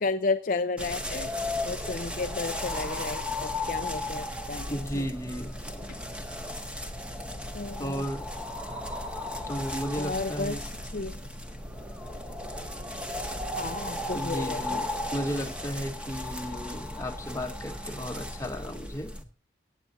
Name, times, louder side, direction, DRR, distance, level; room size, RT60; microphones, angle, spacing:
voice 1, 0.0-1.3 1.6-5.1 7.5-8.1 9.9-11.2 13.5-14.8, left 3 dB, 45° left, 8 dB, 0.6 m, -33 dB
sound 1, 0.8-19.2, left 1 dB, 5° right, 1.4 m, -35 dB
voice 2, 4.7-5.6 7.8-8.2 9.5-10.6 14.1-19.1, equal, 15° left, 4 dB, 1.4 m, -34 dB
24.0 x 9.4 x 2.7 m, 0.33 s
head